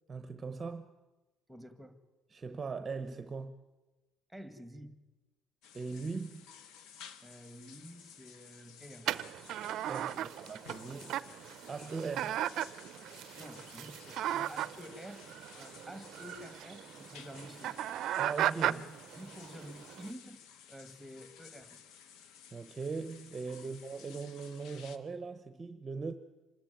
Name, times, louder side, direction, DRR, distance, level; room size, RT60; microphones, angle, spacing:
voice 1, 0.1-0.9 2.3-3.6 5.7-6.4 9.8-12.4 18.2-19.0 22.5-26.1, right 4 dB, 25° right, 11 dB, 0.9 m, -40 dB
voice 2, 1.5-2.0 4.3-5.0 7.2-9.1 10.1-10.3 13.4-15.3 15.6-17.7 19.1-21.8 23.6-23.8, equal, ahead, 11 dB, 1.8 m, -50 dB
sound 1, 5.6-25.0, left 8 dB, 70° left, 1.5 m, -55 dB
sound 2, 9.1-20.1, right 12 dB, 55° right, 0.6 m, -37 dB
25.5 x 14.0 x 9.1 m, 1.1 s
cardioid pair, 135°, 0 cm